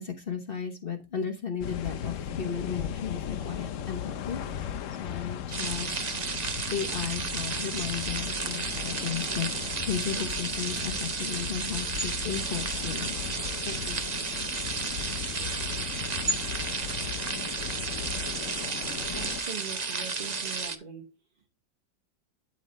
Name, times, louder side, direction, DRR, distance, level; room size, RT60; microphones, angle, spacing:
voice 1, 0.0-6.0 6.7-14.4, left 7 dB, 40° left, 1.0 m, -35 dB
sound 1, 1.6-19.4, left 9 dB, 70° left, 0.7 m, -37 dB
sound 2, 5.5-20.8, right 4 dB, 50° right, 0.5 m, -33 dB
voice 2, 19.1-21.1, right 5 dB, 30° right, 1.2 m, -41 dB
11.5 x 4.0 x 4.2 m
omnidirectional pair, 2.0 m